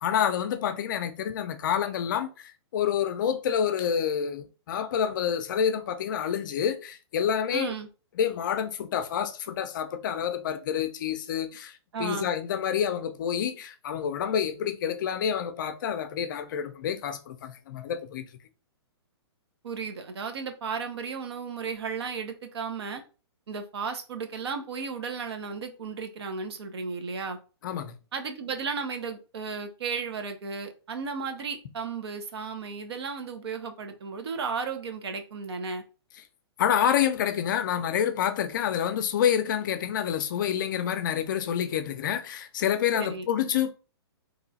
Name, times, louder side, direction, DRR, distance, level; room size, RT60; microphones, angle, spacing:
voice 1, 0.0-7.7 8.2-18.2 27.6-27.9 36.6-43.7, left 9 dB, 45° left, 0.5 m, -28 dB
voice 2, 7.5-7.9 11.9-12.3 19.6-23.0 23.5-27.4 28.1-35.8 42.9-43.3, right 5 dB, 70° right, 0.8 m, -34 dB
3.1 x 2.4 x 3.9 m
hypercardioid pair, 155°, 14 cm